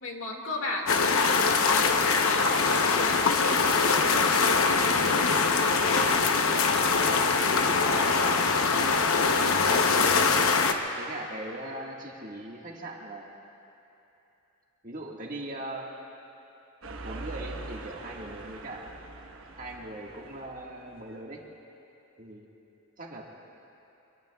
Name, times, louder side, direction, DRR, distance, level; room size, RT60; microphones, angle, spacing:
voice 1, 0.0-2.6 3.0-8.2, left 2 dB, 65° left, 0 dB, 2.0 m, -37 dB
sound 1, 0.9-10.7, left 4 dB, 90° left, 0.9 m, -23 dB
voice 2, 11.0-13.4 14.8-15.9 17.0-18.9 19.6-21.4 22.2-22.5 23.0-23.3, right 1 dB, 40° right, -1 dB, 1.7 m, -40 dB
sound 2, 16.8-21.0, right 3 dB, 80° right, 1.2 m, -42 dB
24.0 x 23.5 x 2.3 m, 2.9 s
head